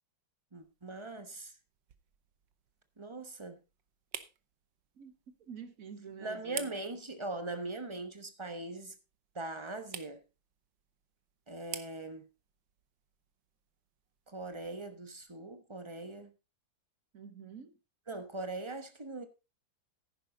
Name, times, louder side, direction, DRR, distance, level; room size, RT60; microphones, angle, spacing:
voice 1, 0.5-1.5 3.0-3.6 6.2-8.9 9.3-10.2 11.5-12.3 14.3-16.3 18.1-19.3, right 2 dB, 20° right, 0.9 m, -41 dB
sound 1, 0.6-15.4, right 10 dB, 70° right, 1.6 m, -51 dB
voice 2, 5.0-6.7 17.1-17.7, right 6 dB, 50° right, 1.3 m, -48 dB
10.5 x 10.0 x 3.9 m
omnidirectional pair, 2.1 m